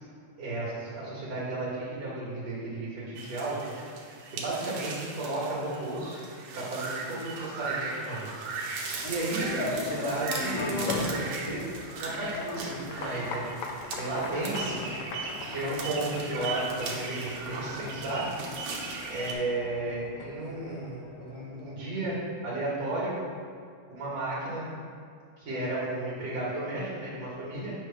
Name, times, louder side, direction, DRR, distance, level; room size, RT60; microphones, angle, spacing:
voice 1, 0.4-3.6 4.3-6.2 6.5-8.4 9.1-11.6 12.0-13.4 14.0-14.8 15.5-18.3 19.1-22.2 22.4-23.1 23.9-24.6 25.4-27.7, right 2 dB, 55° right, -8 dB, 2.5 m, -33 dB
sound 1, 3.2-19.3, right 4 dB, 85° right, 2.5 m, -38 dB
sound 2, 8.9-21.7, left 3 dB, 75° left, 1.9 m, -38 dB
8.7 x 3.3 x 5.7 m, 2.2 s
omnidirectional pair, 3.7 m